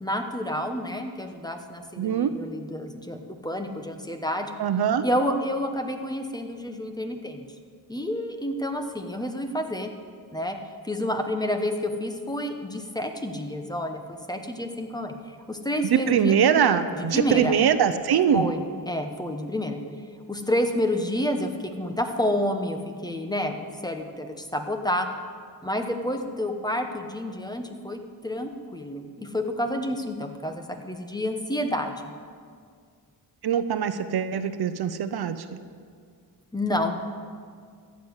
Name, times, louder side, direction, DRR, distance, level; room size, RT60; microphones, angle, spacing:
voice 1, 0.0-4.5 5.0-7.4 7.9-9.9 10.3-10.6 10.8-14.0 14.3-16.4 16.9-17.6 18.3-19.8 20.3-25.1 25.6-32.0 36.5-36.9, left 1 dB, 10° left, 5 dB, 1.0 m, -29 dB
voice 2, 2.0-2.3 4.6-5.0 15.8-18.5 33.4-35.4, right 8 dB, 65° right, 11 dB, 0.7 m, -22 dB
14.0 x 7.2 x 8.1 m, 2.1 s
cardioid pair, 105°, 41 cm